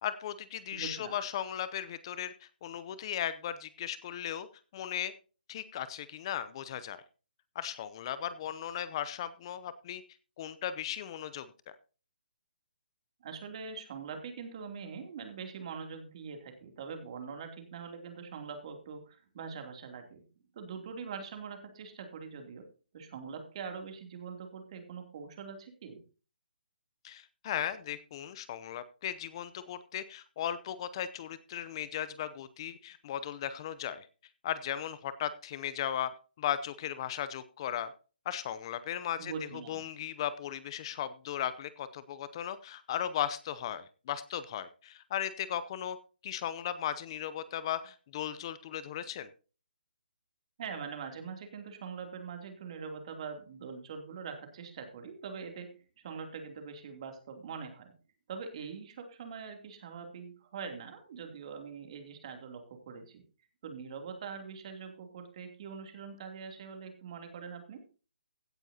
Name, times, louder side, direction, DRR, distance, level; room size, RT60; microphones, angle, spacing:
voice 1, 0.0-4.5 4.7-5.1 5.5-7.0 7.5-10.0 10.4-11.5 27.0-34.1 34.4-36.1 36.4-37.9 38.3-39.3 39.7-46.0 46.2-49.3, left 10 dB, 30° left, 15 dB, 0.6 m, -36 dB
voice 2, 0.7-1.1 13.2-20.2 20.5-22.7 22.9-26.0 39.2-39.8 50.6-57.9 58.3-63.2 63.6-67.8, right 6 dB, 40° right, 5 dB, 2.9 m, -43 dB
16.0 x 9.0 x 2.8 m, 0.35 s
hypercardioid pair, 160°, 5 cm